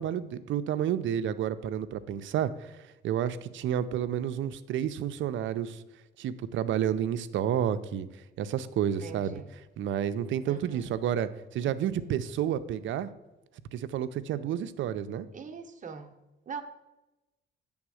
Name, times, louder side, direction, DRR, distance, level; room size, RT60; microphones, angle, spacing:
voice 1, 0.0-2.8 3.0-5.8 6.2-8.1 8.4-13.1 13.7-15.3, right 10 dB, 75° right, 12 dB, 0.5 m, -30 dB
voice 2, 9.0-9.5 10.5-10.9 15.3-16.1 16.5-16.6, right 6 dB, 40° right, 6 dB, 0.8 m, -42 dB
8.7 x 3.5 x 6.2 m, 1.0 s
cardioid pair, 90°, 20 cm